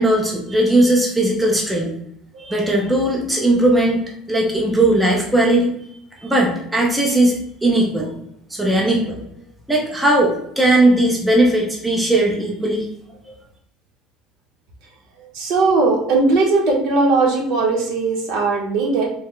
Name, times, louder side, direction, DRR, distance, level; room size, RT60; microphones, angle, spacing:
voice 1, 0.0-1.9 2.4-4.0 4.3-5.7 6.2-8.1 8.5-9.2 9.7-12.9 13.3-13.4, right 1 dB, 5° right, -2 dB, 0.5 m, -18 dB
voice 2, 15.3-19.1, right 3 dB, 60° right, 1 dB, 0.9 m, -18 dB
3.1 x 2.2 x 3.6 m, 0.74 s
cardioid pair, 175°, 0 cm